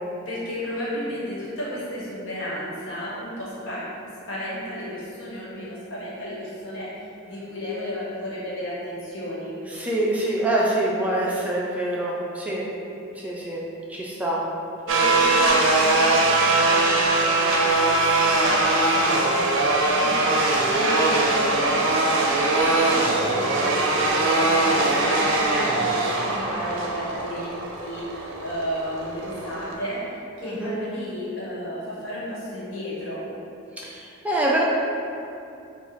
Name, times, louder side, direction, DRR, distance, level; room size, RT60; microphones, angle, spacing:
voice 1, 0.3-3.8 4.3-6.9 7.3-9.6 14.9-22.3 22.6-33.2, equal, 70° left, -8 dB, 1.3 m, -32 dB
voice 2, 9.7-12.7 13.2-13.6 13.9-14.4 30.4-30.8 33.8-34.6, right 1 dB, 5° right, -5 dB, 0.3 m, -25 dB
sound 1, 14.9-29.7, right 2 dB, 65° right, 0.5 m, -21 dB
4.0 x 2.3 x 4.2 m, 2.7 s
head